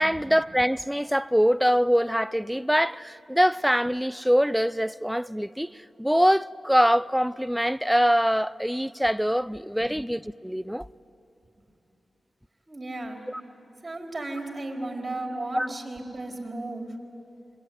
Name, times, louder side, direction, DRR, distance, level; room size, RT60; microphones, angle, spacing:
voice 1, 0.0-10.9 13.3-13.4 15.5-15.7, equal, ahead, 0.6 m, -24 dB
voice 2, 12.7-13.3 13.8-17.0, right 2 dB, 40° right, 4.6 m, -35 dB
26.0 x 23.5 x 9.7 m
cardioid pair, 50°, 0 cm